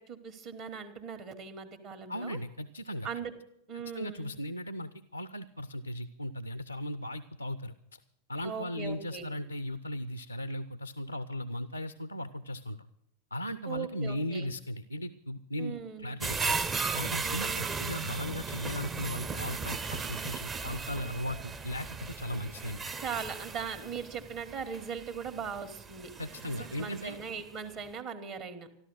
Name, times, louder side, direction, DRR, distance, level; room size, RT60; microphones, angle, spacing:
voice 1, 0.1-2.4 3.0-3.3 3.7-4.3 8.4-9.3 13.6-14.5 15.6-16.2 17.2-17.7 23.0-26.1 26.6-28.7, right 6 dB, 45° right, 6 dB, 1.6 m, -39 dB
voice 2, 2.1-3.1 3.9-8.0 8.3-12.8 13.3-16.5 16.9-22.8 26.2-27.2, equal, 90° left, 14 dB, 0.5 m, -37 dB
sound 1, 16.2-27.4 27.9-28.0, right 4 dB, 20° right, 0.7 m, -36 dB
14.0 x 12.5 x 6.3 m, 0.76 s
figure-of-eight pair, 90°, 0 cm